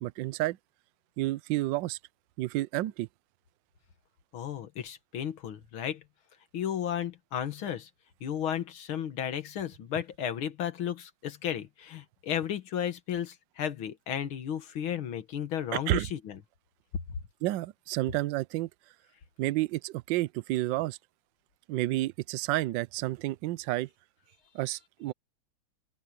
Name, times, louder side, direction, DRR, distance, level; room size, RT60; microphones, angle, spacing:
voice 1, 0.0-0.6 1.2-2.0 2.4-3.1 15.7-16.1 17.4-18.7 19.4-21.0 21.7-23.9 24.5-25.1, right 17 dB, 75° right, 1.2 m, -30 dB
voice 2, 4.3-6.0 6.5-7.9 8.2-16.4, left 9 dB, 85° left, 2.3 m, -34 dB
open air
omnidirectional pair, 2.2 m